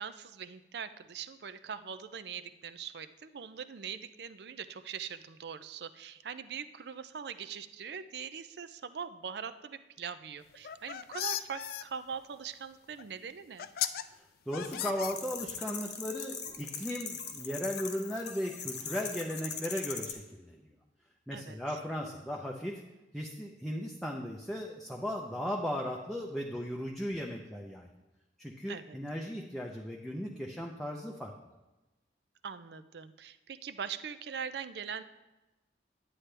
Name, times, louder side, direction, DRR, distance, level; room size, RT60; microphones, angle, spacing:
voice 1, 0.0-13.7 21.3-21.6 28.7-29.0 32.4-35.0, right 7 dB, 65° right, 12 dB, 0.4 m, -42 dB
sound 1, 10.5-11.8 13.0-13.1 13.6-14.0 14.5-15.6, left 11 dB, 50° left, 0.3 m, -36 dB
voice 2, 14.5-20.7 21.3-22.8 23.1-27.9 28.4-31.3, equal, ahead, -2 dB, 0.5 m, -36 dB
sound 2, 15.0-20.1, left 7 dB, 70° left, 1.1 m, -40 dB
9.9 x 8.9 x 3.3 m, 1.1 s
head